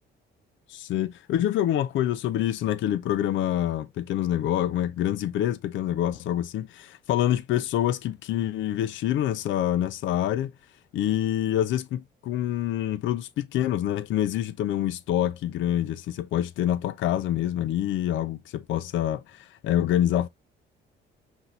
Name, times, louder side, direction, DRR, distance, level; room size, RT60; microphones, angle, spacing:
voice 1, 0.7-10.5 10.9-20.3, left 12 dB, 75° left, 0.4 m, -26 dB
5.5 x 2.6 x 2.6 m
cardioid pair, 90°, 20 cm